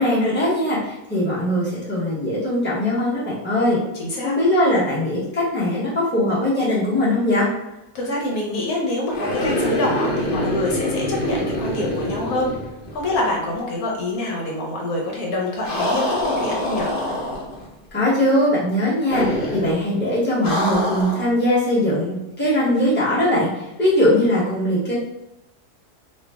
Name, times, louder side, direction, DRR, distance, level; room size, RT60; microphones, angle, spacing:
voice 1, 0.0-3.8 4.2-7.5 17.9-24.9, left 1 dB, 10° left, -9 dB, 1.1 m, -20 dB
voice 2, 3.9-4.3 7.9-12.5 12.9-16.9, left 1 dB, 70° left, -2 dB, 1.2 m, -26 dB
sound 1, 9.1-13.3 13.5-13.6 15.6-17.7 19.1-19.8 20.4-21.3, left 1 dB, 50° left, 0.7 m, -25 dB
3.2 x 2.5 x 3.4 m, 0.91 s
omnidirectional pair, 1.6 m